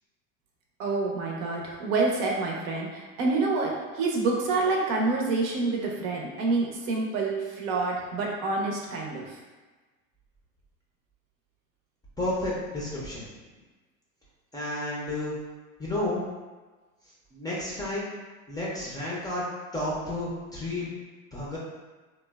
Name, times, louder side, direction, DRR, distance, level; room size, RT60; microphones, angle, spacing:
voice 1, 0.8-9.4, right 3 dB, 65° right, -1 dB, 0.7 m, -27 dB
voice 2, 12.2-13.3 14.5-15.3 15.8-16.2 17.3-18.1 18.5-19.4 19.7-20.9 21.3-21.6, left 1 dB, 10° left, -7 dB, 0.5 m, -31 dB
2.9 x 2.1 x 2.2 m, 1.3 s
hypercardioid pair, 95°, 43 cm